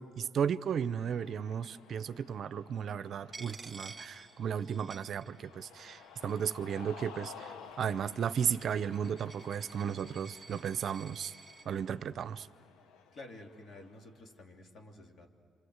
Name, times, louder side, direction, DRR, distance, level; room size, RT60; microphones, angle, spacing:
voice 1, 0.0-11.3 11.7-12.5, right 8 dB, 60° right, 14 dB, 0.7 m, -34 dB
Cheering, 0.7-14.2, left 6 dB, 90° left, 1.2 m, -54 dB
Coin (dropping), 3.3-5.6 5.9-6.7 7.4-11.7, right 4 dB, 25° right, 2.1 m, -52 dB
voice 2, 13.1-15.3, left 2 dB, 55° left, 2 dB, 3.1 m, -51 dB
28.0 x 26.0 x 8.1 m, 2.4 s
cardioid pair, 90°, 0 cm